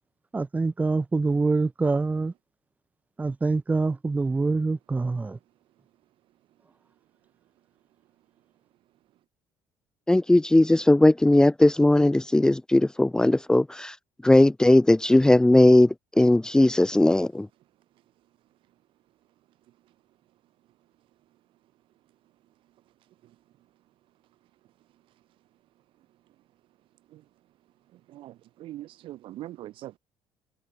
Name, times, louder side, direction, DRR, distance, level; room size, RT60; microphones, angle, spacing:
voice 1, 0.3-2.3 3.2-5.4, right 3 dB, 15° right, 1.0 m, -25 dB
voice 2, 10.1-13.9 14.2-17.5, left 1 dB, 10° left, 0.9 m, -18 dB
voice 3, 28.1-30.0, right 14 dB, 70° right, 4.1 m, -41 dB
cardioid pair, 115°, 9 cm